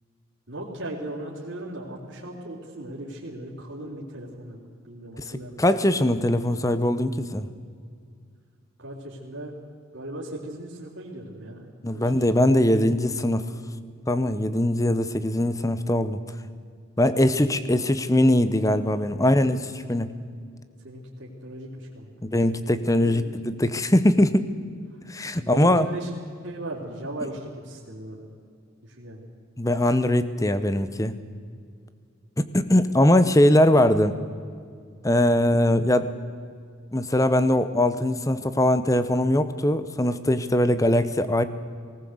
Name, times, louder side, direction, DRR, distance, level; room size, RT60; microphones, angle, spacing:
voice 1, 0.5-4.6 4.8-5.6 8.8-9.5 9.9-11.6 11.9-12.6 19.4-19.6 20.8-22.3 23.0-23.3 24.9-25.0 25.4-26.1 26.4-28.3 28.8-29.2, right 1 dB, 55° right, -5 dB, 3.6 m, -38 dB
voice 2, 5.6-7.5 11.8-13.5 14.1-16.2 17.0-20.1 22.2-24.5 25.1-25.9 29.6-31.1 32.4-34.2 35.0-36.1 36.9-41.4, left 1 dB, 15° left, 13 dB, 0.9 m, -21 dB
19.5 x 18.5 x 8.0 m, 2.2 s
head